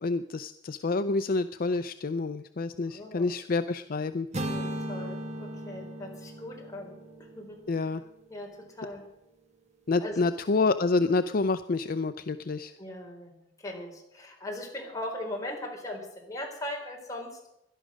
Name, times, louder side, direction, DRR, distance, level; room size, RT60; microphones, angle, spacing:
voice 1, 0.0-4.3 7.7-8.0 9.9-12.7, left 3 dB, 50° left, 11 dB, 0.5 m, -28 dB
voice 2, 2.8-3.3 4.4-7.0 7.3-7.6 8.3-9.0 10.0-10.2 12.8-17.5, left 1 dB, 20° left, 0 dB, 4.3 m, -39 dB
sound 1, 4.3-8.4, right 1 dB, 40° right, 1.5 m, -37 dB
17.5 x 11.5 x 6.4 m, 0.82 s
head